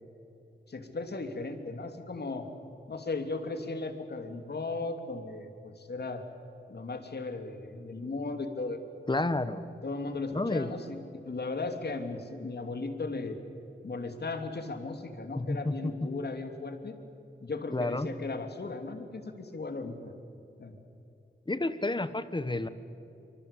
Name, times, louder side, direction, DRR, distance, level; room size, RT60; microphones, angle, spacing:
voice 1, 0.7-2.5 2.9-6.2 6.7-8.8 9.8-13.4 13.8-16.9 17.4-20.1 20.6-20.8, left 3 dB, 55° left, 6 dB, 2.9 m, -36 dB
voice 2, 9.1-9.6 10.3-10.7 15.3-15.9 17.7-18.1 21.5-22.7, left 2 dB, 25° left, 12 dB, 1.4 m, -30 dB
26.5 x 25.5 x 8.4 m, 2.8 s
wide cardioid pair, 80°, 20 cm